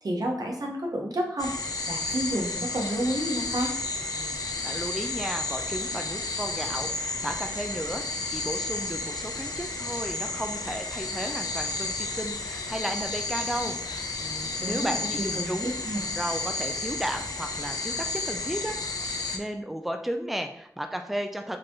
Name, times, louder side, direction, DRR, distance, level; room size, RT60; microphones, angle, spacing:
voice 1, 0.0-1.5 1.9-3.7 14.6-16.0, right 1 dB, 70° right, 0 dB, 1.0 m, -30 dB
sound 1, 1.4-19.4, left 3 dB, 65° left, 0.7 m, -32 dB
voice 2, 4.1-15.7 16.1-18.8 19.0-21.6, equal, 5° right, 5 dB, 0.5 m, -34 dB
4.9 x 2.9 x 3.6 m, 0.68 s
cardioid pair, 40°, 7 cm